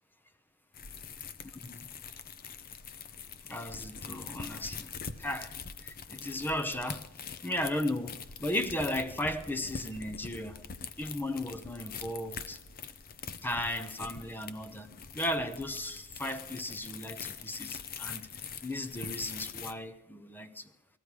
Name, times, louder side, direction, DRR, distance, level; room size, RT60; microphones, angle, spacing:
sound 1, 0.7-19.7, left 6 dB, 40° left, 0.7 m, -44 dB
voice 1, 3.5-4.9 5.2-5.5 5.8-7.1 7.4-10.6 11.0-12.6 13.4-14.9 15.1-18.3 18.6-20.7, left 1 dB, 10° left, 0.7 m, -35 dB
20.0 x 14.0 x 4.8 m
head